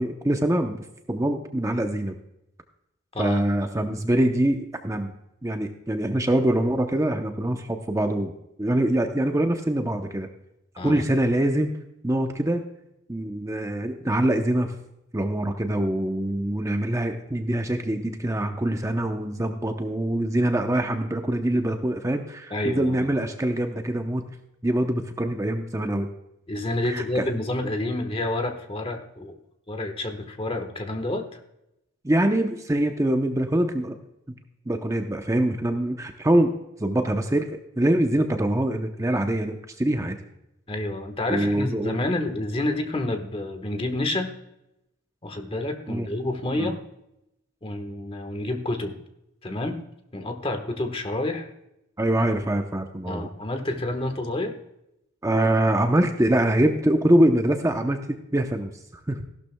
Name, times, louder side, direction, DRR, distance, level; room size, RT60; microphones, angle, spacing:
voice 1, 0.0-2.1 3.2-5.1 5.4-8.3 8.6-10.3 10.8-11.7 12.0-12.6 13.1-14.7 15.1-24.3 24.6-26.1 26.8-27.3 32.0-34.0 34.3-34.4 34.7-36.5 36.8-40.2 41.3-42.0 45.9-46.1 46.5-46.7 52.0-53.3 55.2-58.7 59.1-59.2, right 1 dB, 15° right, 5 dB, 0.7 m, -24 dB
voice 2, 3.1-3.4 10.8-11.0 22.5-22.9 26.5-29.4 29.7-31.4 40.7-44.3 45.2-46.8 47.6-49.0 49.4-49.8 50.1-51.5 53.1-54.6, left 1 dB, 30° left, 6 dB, 1.3 m, -29 dB
15.5 x 12.0 x 2.2 m, 0.85 s
head